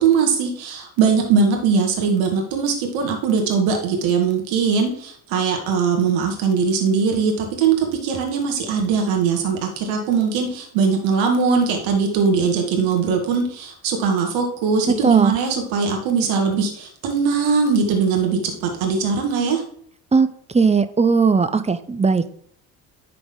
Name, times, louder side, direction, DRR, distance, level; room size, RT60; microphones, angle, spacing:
voice 1, 0.0-19.6, right 5 dB, 65° right, 2 dB, 1.9 m, -20 dB
voice 2, 15.0-15.3 20.1-22.3, right 5 dB, 15° right, 11 dB, 0.7 m, -18 dB
11.0 x 3.9 x 3.8 m, 0.63 s
hypercardioid pair, 60°, 49 cm